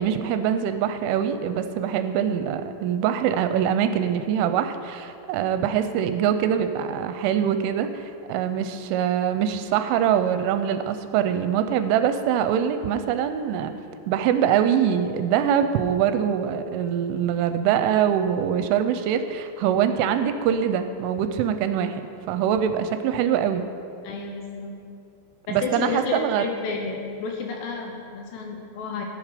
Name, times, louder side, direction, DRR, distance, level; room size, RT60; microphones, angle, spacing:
voice 1, 0.0-13.7 14.1-22.0 22.3-23.7 25.5-26.5, right 9 dB, 85° right, 9 dB, 3.0 m, -23 dB
voice 2, 24.0-24.8 25.5-29.0, left 4 dB, 70° left, 1 dB, 2.8 m, -31 dB
14.5 x 10.5 x 5.1 m, 2.5 s
omnidirectional pair, 5.8 m